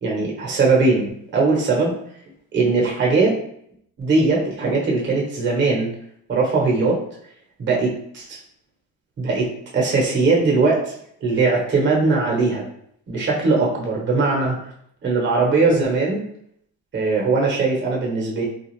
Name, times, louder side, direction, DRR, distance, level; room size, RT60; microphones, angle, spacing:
voice 1, 0.0-1.9 2.5-3.3 4.0-5.9 6.3-7.0 7.6-8.4 9.2-9.5 9.7-10.8 11.2-12.6 13.1-14.6 15.0-16.2 16.9-18.4, right 3 dB, 30° right, -2 dB, 0.9 m, -20 dB
2.4 x 2.3 x 3.1 m, 0.68 s
cardioid pair, 135°, 37 cm